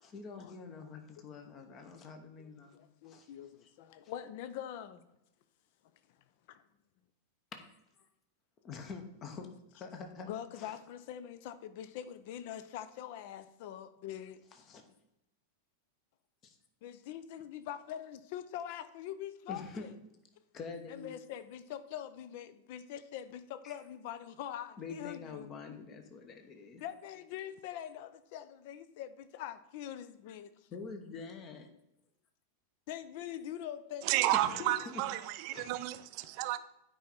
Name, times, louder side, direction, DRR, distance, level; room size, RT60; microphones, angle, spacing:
voice 1, 0.0-3.3 3.6-3.7 4.0-4.1 7.5-7.8 8.6-10.3 10.5-10.8 14.5-14.8 16.4-16.6 19.5-19.9 20.5-21.1 23.6-23.8 24.8-26.8 30.7-31.7 34.3-35.0 35.5-35.8 36.2-36.3, left 4 dB, 30° left, 1.1 m, -46 dB
voice 2, 1.2-1.5 2.4-5.0 6.5-6.6 10.2-14.4 16.8-19.6 20.9-25.5 26.8-30.5 32.9-34.3, left 10 dB, 50° left, 0.6 m, -44 dB
voice 3, 34.0-36.6, right 15 dB, 45° right, 0.5 m, -31 dB
9.4 x 4.8 x 4.3 m
figure-of-eight pair, 90°, 0 cm